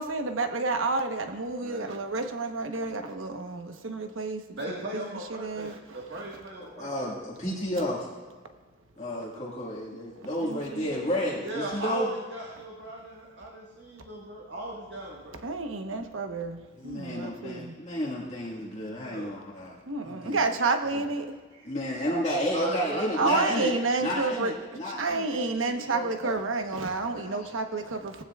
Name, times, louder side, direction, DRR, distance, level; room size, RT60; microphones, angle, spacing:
voice 1, 0.0-6.3 10.4-10.9 15.4-17.8 19.9-21.3 23.2-24.5 24.9-28.2, right 3 dB, 85° right, 6 dB, 1.1 m, -30 dB
voice 2, 1.6-1.9 4.5-7.0 11.4-15.4 19.0-19.3 21.5-22.1 22.5-23.0 23.3-23.5, right 1 dB, 60° right, -3 dB, 1.7 m, -38 dB
voice 3, 6.6-8.1 9.0-12.1 16.8-19.8 20.0-20.4 21.6-23.7 24.0-25.4 25.8-26.4 27.1-27.4, equal, 35° left, -5 dB, 1.8 m, -31 dB
18.0 x 15.0 x 2.4 m, 1.4 s
head